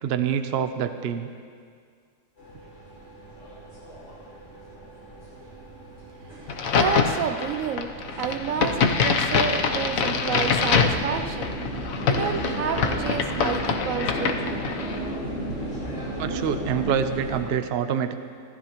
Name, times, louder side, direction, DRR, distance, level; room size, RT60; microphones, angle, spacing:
voice 1, 0.0-1.3 16.2-18.2, right 8 dB, 55° right, 0.9 m, -26 dB
sound 1, 2.4-17.4, right 1 dB, 55° left, 5.8 m, -35 dB
voice 2, 6.1-14.9, right 7 dB, 80° right, 1.1 m, -31 dB
Crack, 6.5-15.1, left 5 dB, 80° left, 1.3 m, -25 dB
25.0 x 15.0 x 3.0 m
omnidirectional pair, 1.4 m